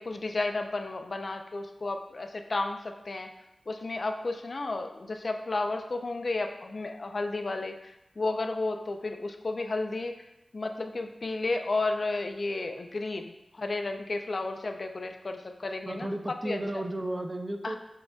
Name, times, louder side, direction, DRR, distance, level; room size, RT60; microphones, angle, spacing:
voice 1, 0.0-3.3 3.7-10.2 10.5-16.6 17.6-17.8, left 2 dB, 60° left, 6 dB, 0.3 m, -32 dB
voice 2, 15.9-17.8, right 1 dB, 30° right, 5 dB, 0.4 m, -33 dB
6.2 x 2.5 x 2.3 m, 0.90 s
cardioid pair, 50°, 0 cm